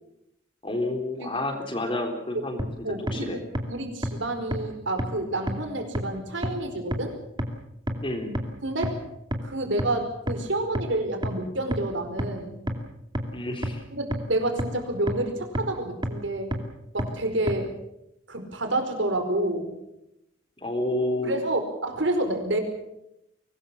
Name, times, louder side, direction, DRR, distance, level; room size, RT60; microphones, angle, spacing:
voice 1, 0.6-3.4 8.0-8.3 13.3-13.8 20.6-21.4, left 1 dB, 25° left, 4 dB, 3.6 m, -30 dB
sound 1, 2.6-2.7 3.1-3.2 3.6-3.7 4.0-4.1 4.5-4.6 5.0-5.1 5.5-5.6 6.0-6.1 6.4-6.5 6.9-7.0 7.4-7.5 7.9-8.0 8.4-8.5 8.8-8.9 9.3-9.4 9.8-9.9 10.3-10.4 10.8-10.9 11.2-11.3 11.7-11.8 12.2-12.3 12.7-12.8 13.2-13.3 13.6-13.7 14.1-14.2 14.6-14.7 15.1-15.2 15.6-15.7 16.0-16.1 16.5-16.6 17.0-17.1 17.5-17.6, right 1 dB, 25° right, 2.5 m, -26 dB
voice 2, 2.8-3.4 3.7-7.1 8.6-9.0 9.4-12.7 13.9-16.5 16.9-17.7 18.3-19.7 21.2-22.6, right 1 dB, 75° right, 6 dB, 4.8 m, -29 dB
23.5 x 19.5 x 7.2 m, 0.83 s
head